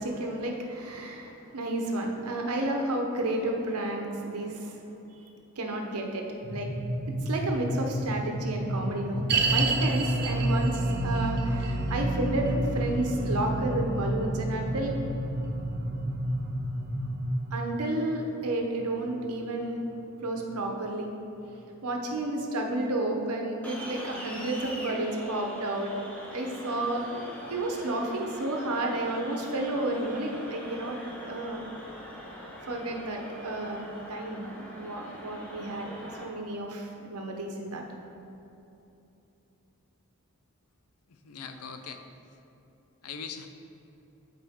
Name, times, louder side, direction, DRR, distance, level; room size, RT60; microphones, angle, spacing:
voice 1, 0.0-4.8 5.6-6.7 7.2-9.2 9.5-14.9 17.5-19.8 20.2-21.1 21.8-26.0 26.2-27.2 27.5-31.6 32.3-37.8, right 1 dB, 90° right, 2 dB, 0.9 m, -31 dB
sound 1, 6.4-17.3, equal, 30° left, 1.2 m, -32 dB
sound 2, 9.3-20.6 20.8-20.9 21.6-21.7, right 3 dB, 45° right, 0.4 m, -32 dB
sound 3, 23.6-36.2, equal, 5° left, 0.7 m, -43 dB
voice 2, 41.1-42.0 43.0-43.5, left 6 dB, 85° left, 7 dB, 0.5 m, -41 dB
8.3 x 4.5 x 3.6 m, 2.9 s
head